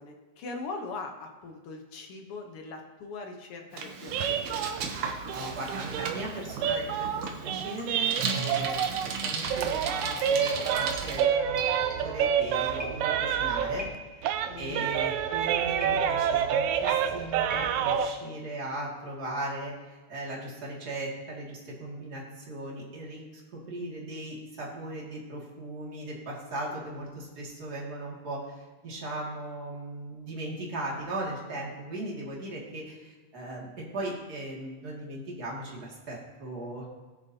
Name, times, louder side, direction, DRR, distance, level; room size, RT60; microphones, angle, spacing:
voice 1, 0.0-4.6 14.5-14.9, left 3 dB, 60° left, 3 dB, 1.6 m, -41 dB
Bicycle, 3.7-11.2, right 5 dB, 65° right, 1.6 m, -35 dB
sound 1, 4.1-9.2 9.5-14.0 14.2-18.1, right 8 dB, 80° right, 2.0 m, -28 dB
voice 2, 5.3-11.6 12.0-13.9 14.2-23.2 23.5-36.9, right 1 dB, 35° right, -4 dB, 2.6 m, -38 dB
sound 2, 6.4-6.8 7.2-8.1 8.4-8.7 9.1-9.4 10.0-12.3 12.8-13.4 13.8-14.3 15.8-16.4 16.9-17.9, right 1 dB, 10° right, 1.4 m, -43 dB
19.0 x 6.7 x 2.8 m, 1.3 s
omnidirectional pair, 3.3 m